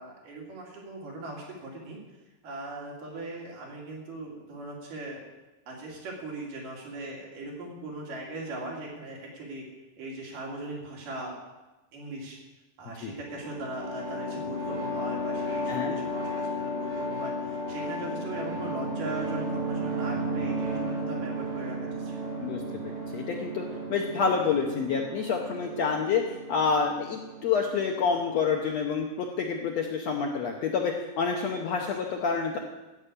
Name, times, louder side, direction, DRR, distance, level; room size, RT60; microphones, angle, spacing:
voice 1, 0.0-2.0 2.4-5.2 5.7-9.7 10.0-11.3 11.9-12.4 12.8-22.3, right 2 dB, 70° right, -2 dB, 4.1 m, -39 dB
sound 1, 13.2-28.7, equal, 90° right, 4.8 m, -34 dB
voice 2, 22.4-26.2 26.5-32.6, left 5 dB, 70° left, 1 dB, 1.7 m, -28 dB
13.5 x 5.5 x 8.4 m, 1.1 s
omnidirectional pair, 4.0 m